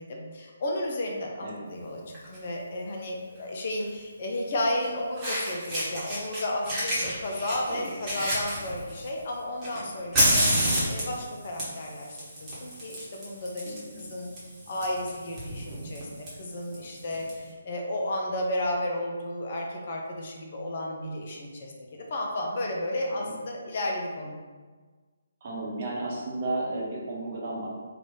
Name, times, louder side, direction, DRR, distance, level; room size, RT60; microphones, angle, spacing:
voice 1, 0.0-2.0 2.3-14.3 14.7-24.4, left 1 dB, 45° left, 0 dB, 0.6 m, -33 dB
Fire, 2.1-2.4 3.8-3.9 4.8-4.9 5.2-6.4 6.7-9.1 9.6-17.3, equal, 15° right, 1.1 m, -29 dB
voice 2, 13.7-14.0 23.2-23.3 25.4-27.7, right 2 dB, 40° right, -4 dB, 0.9 m, -33 dB
3.1 x 2.4 x 3.7 m, 1.4 s
figure-of-eight pair, 140°, 0 cm